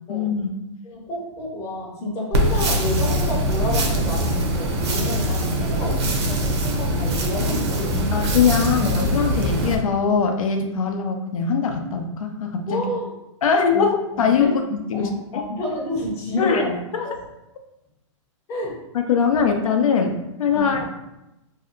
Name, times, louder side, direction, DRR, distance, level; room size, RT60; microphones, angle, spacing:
voice 1, 0.1-0.5 8.1-12.9 13.4-15.4 16.4-16.6 16.9-17.1 18.9-20.9, left 6 dB, 85° left, 4 dB, 0.6 m, -22 dB
voice 2, 0.8-8.1 12.7-13.1 13.7-13.8 14.1-14.6 14.9-16.8 17.0-17.2 18.5-18.8 20.5-20.8, left 1 dB, 15° left, -4 dB, 0.6 m, -29 dB
sound 1, 2.3-9.8, equal, 50° right, 0.6 m, -22 dB
2.7 x 2.1 x 3.7 m, 0.91 s
hypercardioid pair, 165°, 17 cm